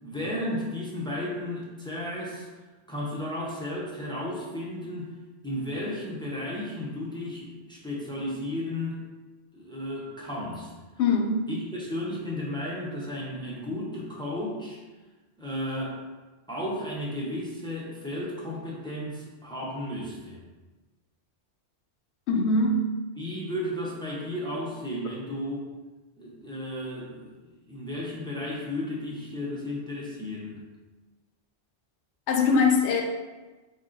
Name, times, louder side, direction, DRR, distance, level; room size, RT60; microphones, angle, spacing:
voice 1, 0.0-2.5 2.9-5.1 5.4-9.0 9.5-10.7 11.5-14.8 15.4-16.1 16.5-20.4 23.2-25.6 26.2-27.4 27.7-30.7, left 1 dB, 5° left, -5 dB, 0.4 m, -34 dB
voice 2, 11.0-11.5 22.3-22.9 32.3-33.0, left 3 dB, 75° left, 3 dB, 0.8 m, -22 dB
3.9 x 2.2 x 3.7 m, 1.2 s
omnidirectional pair, 1.2 m